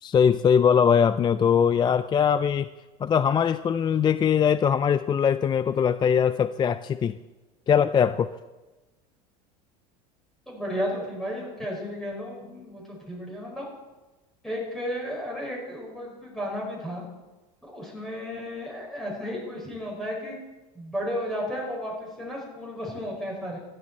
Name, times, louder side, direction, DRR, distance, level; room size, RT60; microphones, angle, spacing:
voice 1, 0.0-2.7 3.0-7.2 7.7-8.3, left 7 dB, 25° left, 14 dB, 0.4 m, -21 dB
voice 2, 10.5-13.7 14.4-17.0 17.7-20.4 20.7-23.6, equal, ahead, -3 dB, 5.2 m, -33 dB
15.5 x 13.0 x 4.4 m, 1.1 s
supercardioid pair, 110°, 19 cm